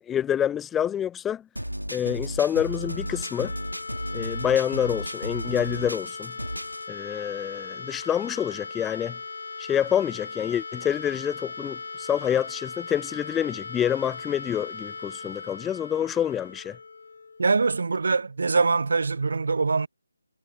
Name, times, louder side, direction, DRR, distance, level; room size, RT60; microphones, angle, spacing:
voice 1, 0.0-1.4 1.9-3.5 4.1-6.3 6.9-9.2 9.6-16.8, left 9 dB, 5° left, 0.4 m, -27 dB
sound 1, 1.6-6.9, equal, 85° right, 1.7 m, -34 dB
sound 2, 2.4-18.2, left 4 dB, 50° left, 4.2 m, -39 dB
voice 2, 17.4-19.9, right 4 dB, 50° right, 1.1 m, -23 dB
figure-of-eight pair, 150°, 0 cm